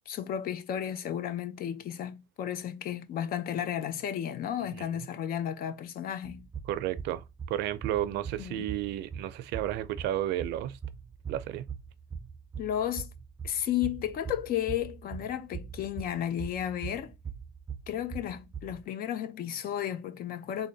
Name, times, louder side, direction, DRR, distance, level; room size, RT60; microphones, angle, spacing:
voice 1, 0.1-6.5 8.1-8.7 12.6-13.1 13.4-17.1 17.9-20.7, left 10 dB, 60° left, 0.6 m, -33 dB
voice 2, 4.7-5.1 6.7-10.8 11.3-11.7, right 13 dB, 85° right, 0.5 m, -32 dB
sound 1, 6.2-18.8, right 7 dB, 25° right, 0.4 m, -42 dB
3.5 x 2.2 x 3.9 m
cardioid pair, 110°, 17 cm